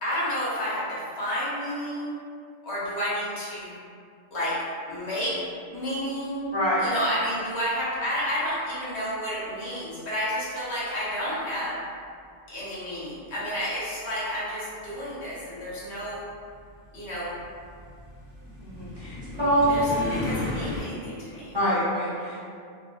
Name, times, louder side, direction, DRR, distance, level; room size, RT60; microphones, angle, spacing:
voice 1, 0.0-2.1 2.6-3.8 4.3-4.6 4.9-5.3 5.6-6.5 6.8-11.8 12.5-16.2 16.9-17.3 19.3-19.4 19.7-19.8 20.1-21.6, equal, 80° left, -8 dB, 1.0 m, -30 dB
sound 1, 14.7-20.8, left 2 dB, 15° left, 0.6 m, -35 dB
voice 2, 18.6-19.6 21.5-22.4, equal, 30° right, -13 dB, 0.6 m, -26 dB
2.4 x 2.1 x 2.4 m, 2.3 s
omnidirectional pair, 1.1 m